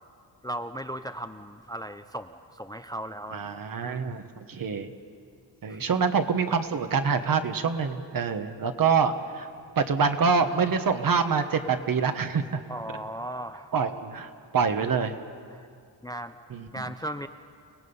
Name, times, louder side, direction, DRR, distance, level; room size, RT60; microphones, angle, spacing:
voice 1, 0.4-4.3 5.7-5.8 12.7-13.7 15.5-15.7 16.0-16.3 16.7-17.3, right 1 dB, 10° left, 9 dB, 0.5 m, -37 dB
voice 2, 3.3-4.9 5.6-9.5 9.8-12.6 13.7-15.2 16.5-16.9, right 5 dB, 50° right, 8 dB, 1.2 m, -26 dB
30.0 x 18.0 x 5.5 m, 2.3 s
cardioid pair, 105°, 43 cm